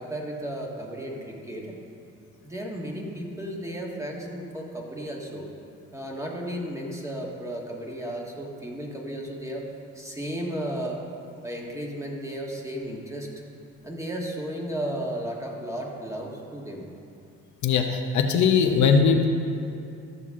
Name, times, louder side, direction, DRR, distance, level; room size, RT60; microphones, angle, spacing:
voice 1, 0.0-1.7 2.4-5.5 5.9-9.7 9.9-11.0 11.4-13.3 13.8-16.8, right 1 dB, 10° right, -1 dB, 1.6 m, -34 dB
voice 2, 17.6-19.3, left 6 dB, 70° left, 4 dB, 0.8 m, -20 dB
13.5 x 6.9 x 3.7 m, 2.7 s
cardioid pair, 90°, 30 cm